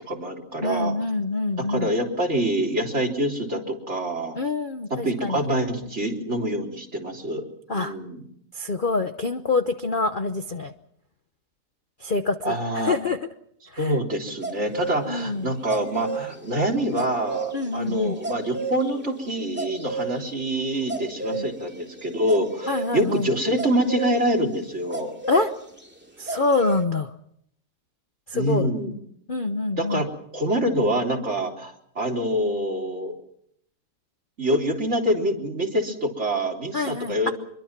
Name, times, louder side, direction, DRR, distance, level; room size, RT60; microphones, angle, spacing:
voice 1, 0.1-0.9 1.7-4.4 5.0-8.2 12.4-13.0 13.8-25.1 28.3-28.9 29.8-30.1 30.3-33.2 34.4-37.3, right 1 dB, 40° right, 1 dB, 3.9 m, -26 dB
voice 2, 0.6-1.9 4.4-5.5 7.7-8.0 8.5-10.7 12.0-13.2 13.7-13.9 15.1-15.5 17.5-18.1 21.3-21.5 22.7-23.3 25.3-25.5 26.2-27.1 28.3-28.7 29.3-30.0 36.7-37.3, left 3 dB, 35° left, 7 dB, 0.9 m, -26 dB
sound 1, 14.4-14.9 15.4-24.2 24.9-25.5 25.8-25.9 26.3-26.8, right 4 dB, 5° right, 2.4 m, -32 dB
26.0 x 22.5 x 6.0 m, 0.70 s
omnidirectional pair, 1.9 m